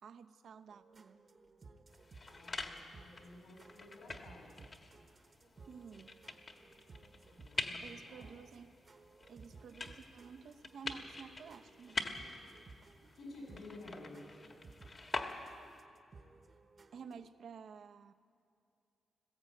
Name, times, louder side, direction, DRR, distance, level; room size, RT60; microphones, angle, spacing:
voice 1, 0.0-1.2 5.7-6.2 7.8-8.8 9.3-12.0 16.9-18.1, right 6 dB, 65° right, 9 dB, 0.8 m, -52 dB
sound 1, 0.7-17.3, right 3 dB, 35° right, 1.1 m, -59 dB
sound 2, 1.9-15.8, left 3 dB, 35° left, 1.6 m, -46 dB
voice 2, 2.3-4.6 7.3-8.3 13.1-14.3, left 2 dB, 65° left, 0 dB, 7.6 m, -53 dB
20.5 x 15.0 x 9.0 m, 2.5 s
wide cardioid pair, 145°, 0 cm